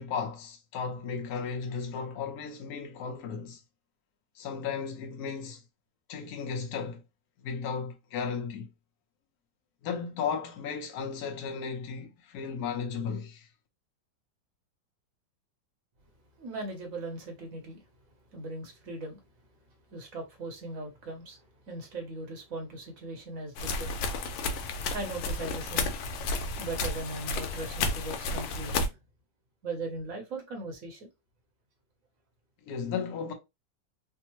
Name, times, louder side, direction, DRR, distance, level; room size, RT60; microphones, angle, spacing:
voice 1, 0.0-3.6 4.3-5.6 6.1-7.0 7.4-8.7 9.8-13.5 32.7-33.3, left 6 dB, 65° left, 1.1 m, -35 dB
voice 2, 16.4-17.8 18.3-19.2 19.9-24.0 24.9-25.9 26.6-29.0 29.6-31.1, right 2 dB, 55° right, 1.0 m, -39 dB
sound 1, 23.6-28.9, left 3 dB, 85° left, 1.3 m, -32 dB
3.5 x 2.0 x 2.9 m
omnidirectional pair, 2.0 m